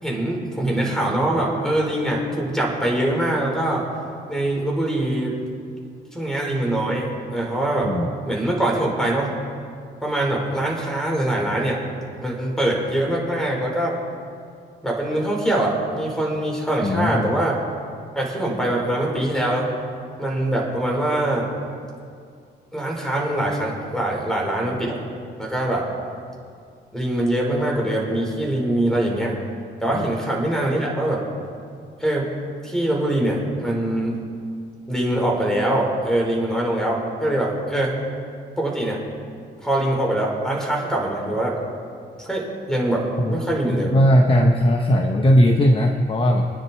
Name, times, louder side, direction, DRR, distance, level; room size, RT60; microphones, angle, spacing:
voice 1, 0.0-3.9 4.3-5.3 6.1-7.9 8.2-9.3 10.0-11.8 12.2-14.0 14.8-17.6 18.1-19.7 20.2-21.5 22.7-25.0 25.4-25.8 26.9-29.3 29.8-31.2 32.0-32.3 32.6-34.2 34.9-37.9 38.6-39.0 39.6-41.6 42.2-43.9, right 1 dB, 5° left, -2 dB, 5.0 m, -23 dB
voice 2, 16.8-17.3 29.9-30.1 43.2-43.4 43.7-46.5, equal, 25° left, 3 dB, 1.2 m, -18 dB
27.0 x 9.8 x 4.6 m, 2.3 s
cardioid pair, 90°, 20 cm